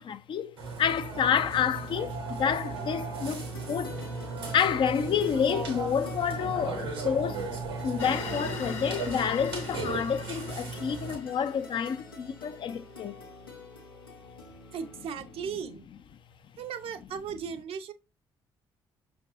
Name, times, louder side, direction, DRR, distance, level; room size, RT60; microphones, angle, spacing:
voice 1, 0.0-3.9 4.5-7.5 7.8-13.2, left 8 dB, 45° left, 0.4 m, -29 dB
Burping eructation, 0.6-11.2, right 3 dB, 80° right, 0.9 m, -36 dB
sound 1, 2.3-15.5, left 3 dB, 90° left, 0.6 m, -48 dB
sound 2, 8.0-12.6, left 5 dB, 60° left, 1.0 m, -42 dB
voice 2, 14.7-15.9 16.6-17.9, right 7 dB, 55° right, 0.5 m, -36 dB
5.7 x 2.5 x 2.4 m
figure-of-eight pair, 40°, 12 cm